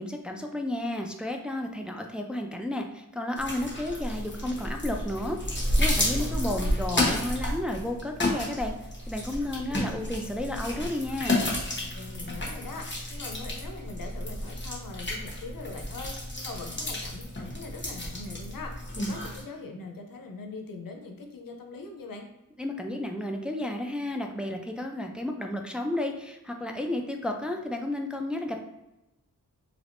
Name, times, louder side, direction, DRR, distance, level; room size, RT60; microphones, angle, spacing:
voice 1, 0.0-5.4 5.8-8.7 9.1-11.5 22.6-28.6, left 1 dB, 5° right, 3 dB, 0.4 m, -32 dB
sound 1, 3.4-19.4, left 1 dB, 35° left, 1.0 m, -31 dB
voice 2, 6.1-6.8 11.8-22.3, left 3 dB, 85° left, 3 dB, 0.6 m, -42 dB
3.3 x 3.0 x 2.5 m, 0.96 s
wide cardioid pair, 55°, 33 cm